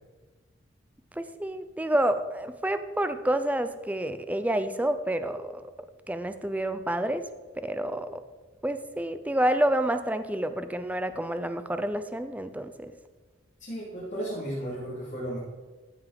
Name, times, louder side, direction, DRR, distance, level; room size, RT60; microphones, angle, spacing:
voice 1, 1.2-5.7 6.1-7.3 7.6-8.2 8.6-12.9, right 1 dB, 10° right, 10 dB, 0.4 m, -28 dB
voice 2, 13.6-15.4, right 1 dB, 40° left, -8 dB, 3.3 m, -34 dB
14.5 x 6.0 x 5.2 m, 1.3 s
head